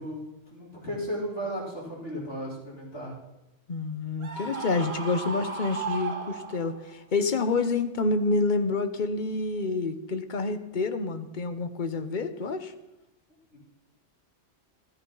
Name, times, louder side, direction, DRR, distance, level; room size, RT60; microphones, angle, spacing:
voice 1, 0.0-3.2 13.5-13.6, equal, 75° left, -5 dB, 5.1 m, -35 dB
voice 2, 3.7-12.7, left 3 dB, 45° left, 9 dB, 1.1 m, -28 dB
Screaming, 4.2-6.9, right 4 dB, 65° right, 1.5 m, -35 dB
13.0 x 13.0 x 5.6 m, 0.94 s
omnidirectional pair, 1.2 m